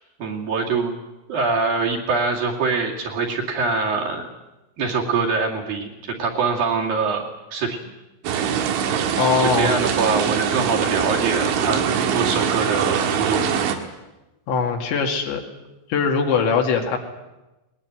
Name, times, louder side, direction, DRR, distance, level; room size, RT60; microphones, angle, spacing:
voice 1, 0.2-0.9 1.3-4.3 4.8-7.9 9.5-11.8 12.1-13.5, right 4 dB, 55° right, 0 dB, 3.8 m, -24 dB
sound 1, 8.2-13.8, right 8 dB, 75° right, 4.0 m, -23 dB
voice 2, 9.2-9.9 14.5-15.4 15.9-17.0, left 5 dB, 70° left, 2 dB, 4.5 m, -21 dB
21.0 x 20.5 x 9.4 m, 1.0 s
omnidirectional pair, 5.5 m